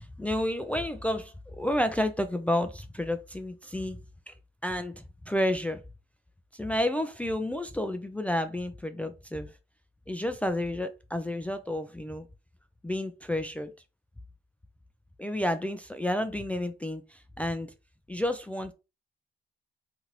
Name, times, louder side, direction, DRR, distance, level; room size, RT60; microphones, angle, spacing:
voice 1, 0.0-4.0 4.3-4.4 4.6-5.8 6.5-9.5 10.1-12.3 12.8-13.7 15.2-17.7 18.1-18.7, left 1 dB, 5° left, 8 dB, 0.3 m, -30 dB
2.8 x 2.5 x 3.0 m, 0.28 s
cardioid pair, 90°, 20 cm